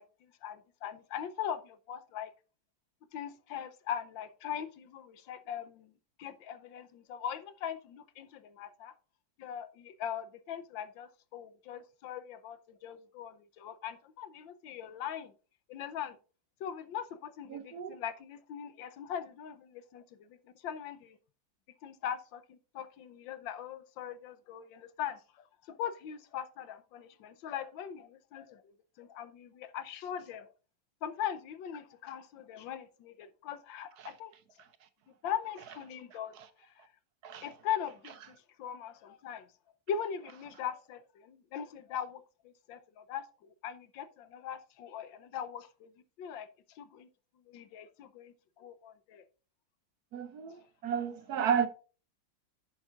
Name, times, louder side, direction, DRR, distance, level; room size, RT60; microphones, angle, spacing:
voice 1, 0.0-2.3 3.1-5.9 6.2-8.9 9.4-15.3 15.7-16.2 16.6-21.2 21.8-30.5 31.0-34.3 35.2-36.9 37.4-39.5 39.9-45.9 46.2-47.1 47.5-49.3, left 9 dB, 90° left, 1.5 m, -41 dB
voice 2, 17.5-17.9 37.2-37.4 50.1-50.6 50.8-51.7, right 7 dB, 65° right, 1.2 m, -32 dB
11.0 x 8.5 x 2.5 m
omnidirectional pair, 2.0 m